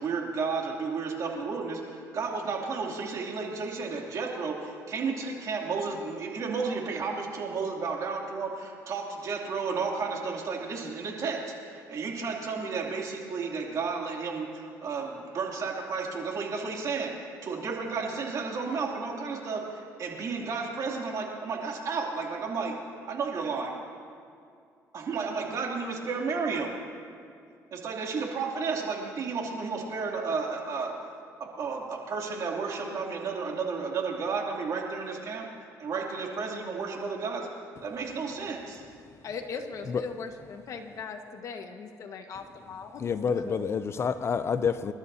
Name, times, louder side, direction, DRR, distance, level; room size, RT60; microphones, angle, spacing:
voice 1, 0.0-22.7 23.0-23.7 24.9-26.7 27.7-30.9 31.4-35.5 35.8-37.5 37.8-38.8, right 4 dB, 55° right, 2.7 m, -32 dB
voice 2, 39.2-43.0 43.3-43.7, left 5 dB, 55° left, 1.5 m, -39 dB
voice 3, 43.0-44.9, left 6 dB, 40° left, 0.5 m, -28 dB
27.0 x 12.5 x 2.8 m
cardioid pair, 95°, 7 cm